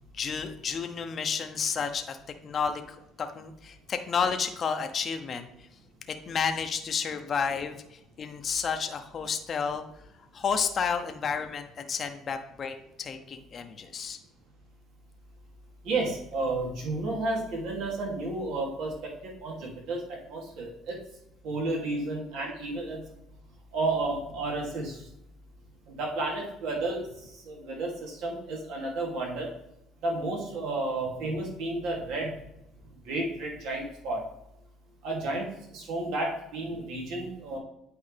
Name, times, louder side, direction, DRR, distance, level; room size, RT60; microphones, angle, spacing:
voice 1, 0.1-2.2 2.4-5.7 6.3-9.8 10.3-14.2, left 6 dB, 40° left, 6 dB, 0.7 m, -31 dB
voice 2, 15.8-21.0 21.4-23.0 23.7-25.1 25.9-27.1 27.4-29.5 30.0-32.4 33.0-34.2 35.0-37.6, right 2 dB, 75° right, -2 dB, 2.6 m, -32 dB
8.6 x 4.7 x 3.4 m, 0.81 s
cardioid pair, 110°, 0 cm